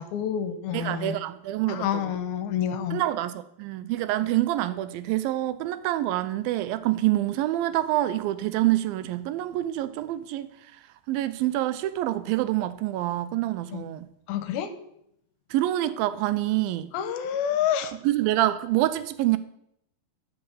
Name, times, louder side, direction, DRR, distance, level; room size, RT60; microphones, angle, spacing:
voice 1, 0.0-1.2 1.7-3.0 13.7-13.9 14.3-14.7 16.9-17.9, left 9 dB, 80° left, 2.6 m, -28 dB
voice 2, 0.7-2.1 2.9-14.1 15.5-16.9 18.0-19.4, right 15 dB, 80° right, 2.2 m, -26 dB
10.0 x 5.7 x 6.9 m
omnidirectional pair, 4.3 m